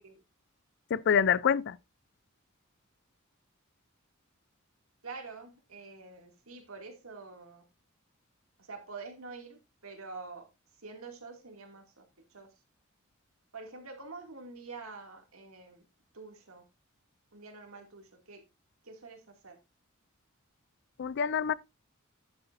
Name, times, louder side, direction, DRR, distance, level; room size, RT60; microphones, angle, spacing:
voice 1, 0.9-1.8 21.0-21.5, left 7 dB, 55° left, 0.4 m, -26 dB
voice 2, 5.0-7.6 8.6-10.5 10.8-12.0 12.3-12.5 13.5-15.8 16.1-16.6 17.3-18.4 18.8-19.6, right 4 dB, 90° right, 2.4 m, -46 dB
11.0 x 7.9 x 2.6 m
head